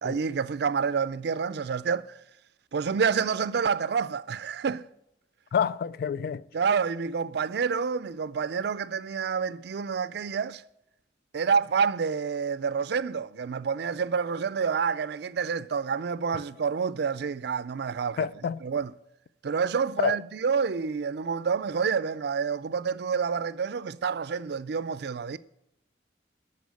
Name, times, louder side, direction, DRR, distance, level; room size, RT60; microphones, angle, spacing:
voice 1, 0.0-2.1 2.7-4.8 6.5-10.6 11.3-18.3 18.6-18.9 19.4-25.4, right 6 dB, 65° right, 0.4 m, -28 dB
voice 2, 5.5-6.5 18.2-18.6 20.0-20.2, left 7 dB, 60° left, 0.3 m, -28 dB
12.5 x 4.3 x 8.3 m
head